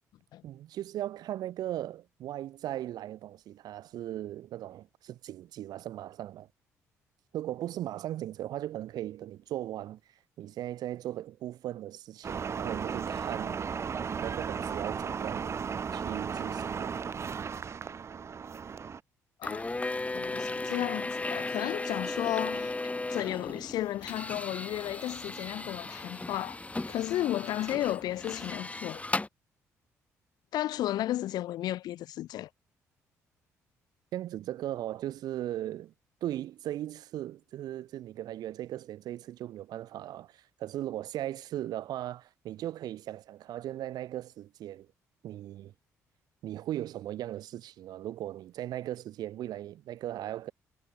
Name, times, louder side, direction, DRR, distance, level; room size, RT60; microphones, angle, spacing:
voice 1, 0.4-6.5 7.3-10.0 10.4-13.6 14.2-15.5 15.9-17.0 34.1-35.9 36.2-44.9 45.2-45.7 46.4-50.5, right 13 dB, 55° right, 1.7 m, -38 dB
sound 1, 12.2-19.0, right 6 dB, 35° right, 0.8 m, -35 dB
voice 2, 19.4-19.8 20.1-22.7 23.1-26.6 26.9-29.0 30.5-32.5, left 13 dB, 55° left, 1.8 m, -33 dB
sound 2, 19.4-29.3, left 2 dB, 15° left, 5.2 m, -36 dB
figure-of-eight pair, 45°, 8 cm